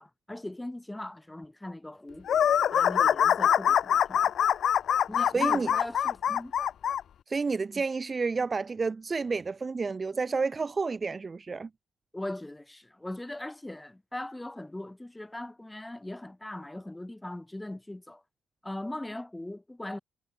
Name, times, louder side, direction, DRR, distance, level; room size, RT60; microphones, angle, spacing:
voice 1, 0.0-2.3 2.7-4.3 5.1-6.5 7.7-7.8 12.1-18.2 18.6-20.0, left 1 dB, 10° left, 6.0 m, -40 dB
sound 1, 2.3-7.0, left 9 dB, 65° left, 1.7 m, -24 dB
voice 2, 5.3-5.7 7.3-11.7, right 4 dB, 30° right, 1.1 m, -30 dB
cardioid pair, 90°, 0 cm